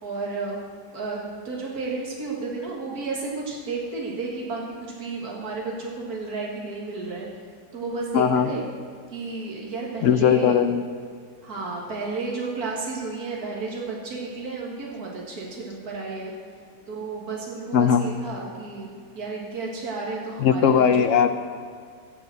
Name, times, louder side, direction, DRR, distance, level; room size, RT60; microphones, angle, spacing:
voice 1, 0.0-0.6 0.9-7.3 7.7-8.6 9.1-10.5 11.4-16.3 16.9-18.9 19.1-20.8, right 3 dB, 70° right, -3 dB, 2.2 m, -32 dB
voice 2, 8.1-8.5 10.0-10.8 17.7-18.1 20.4-21.3, left 8 dB, 65° left, 9 dB, 0.9 m, -19 dB
15.0 x 5.2 x 7.8 m, 2.2 s
omnidirectional pair, 1.6 m